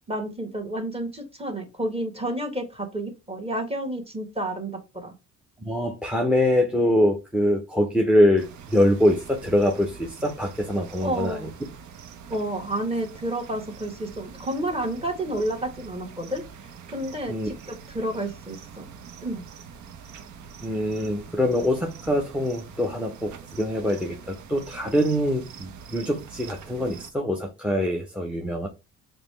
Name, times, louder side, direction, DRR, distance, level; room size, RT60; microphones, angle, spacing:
voice 1, 0.1-5.1 11.0-11.5 12.3-16.4 16.9-18.9 19.2-19.4, right 1 dB, 20° right, 1.3 m, -30 dB
voice 2, 5.6-11.5 17.3-17.5 20.6-28.7, left 1 dB, 5° right, 0.6 m, -24 dB
sound 1, 8.4-27.1, right 7 dB, 70° right, 0.7 m, -44 dB
5.0 x 2.2 x 3.1 m
cardioid pair, 90°, 30 cm